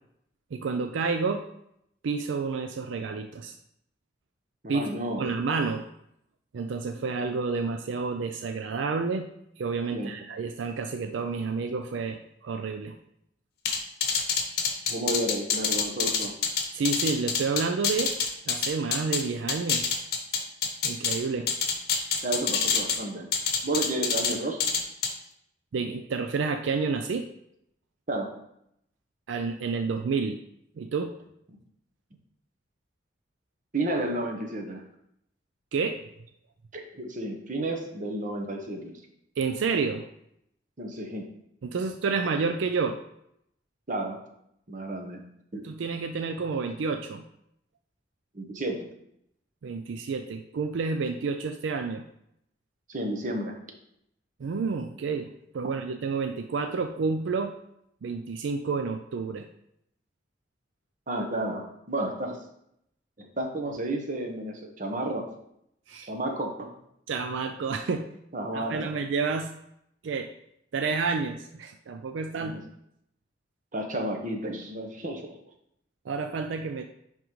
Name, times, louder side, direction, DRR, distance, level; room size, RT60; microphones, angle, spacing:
voice 1, 0.5-1.4 2.0-3.6 4.7-4.9 5.2-5.9 6.5-9.3 9.6-13.0 16.7-18.1 18.5-19.9 20.8-21.5 25.7-27.3 29.3-30.4 30.8-31.1 35.7-36.0 39.4-40.1 41.6-43.0 45.6-47.2 49.6-52.0 54.4-57.5 58.0-59.5 65.9-66.1 67.1-68.1 68.5-69.5 70.0-70.3 70.7-72.6 76.1-76.8, right 4 dB, 80° right, 6 dB, 0.4 m, -29 dB
voice 2, 4.6-5.2 9.9-10.1 14.9-16.3 22.2-23.3 23.6-24.8 28.1-28.3 33.7-34.8 36.7-39.0 40.8-41.3 43.9-44.2 44.7-45.2 45.5-45.7 48.3-48.9 52.9-53.6 61.1-62.4 63.2-65.3 66.1-66.7 68.3-68.9 72.4-72.6 73.7-75.3, right 1 dB, 45° right, 3 dB, 1.0 m, -32 dB
sound 1, 13.7-19.2 19.5-21.2 21.5-23.0 23.3-24.3 24.6-25.1, left 6 dB, 55° left, 0.8 m, -26 dB
9.9 x 3.7 x 3.1 m, 0.76 s
head